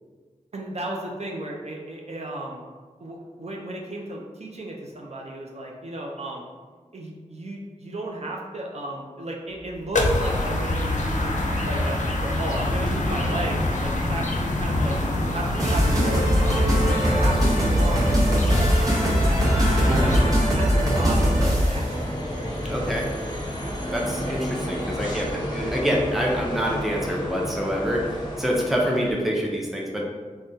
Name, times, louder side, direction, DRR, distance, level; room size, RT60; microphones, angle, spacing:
voice 1, 0.5-2.6 3.0-6.5 6.9-11.4 11.6-14.9 15.2-16.5 16.9-19.5 19.9-22.3 24.2-24.4, right 1 dB, 55° right, -1 dB, 0.5 m, -34 dB
sound 1, 9.5-29.3, equal, 30° left, 0.8 m, -34 dB
sound 2, 9.9-20.2, left 1 dB, 65° left, 0.5 m, -26 dB
sound 3, 15.6-21.9, equal, 25° right, 0.9 m, -21 dB
voice 2, 19.9-20.3 22.6-23.1 23.9-30.0, equal, ahead, -2 dB, 0.5 m, -26 dB
3.4 x 2.2 x 2.6 m, 1.5 s
wide cardioid pair, 65°, 13 cm